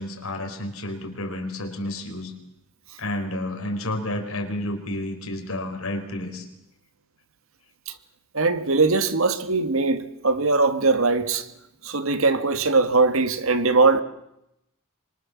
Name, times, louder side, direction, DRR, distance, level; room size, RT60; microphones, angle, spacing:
voice 1, 0.0-2.3 3.0-6.5, left 1 dB, 90° left, 4.7 m, -30 dB
voice 2, 8.3-11.5 11.8-14.0, right 3 dB, 75° right, 1.9 m, -21 dB
25.5 x 24.0 x 7.2 m
head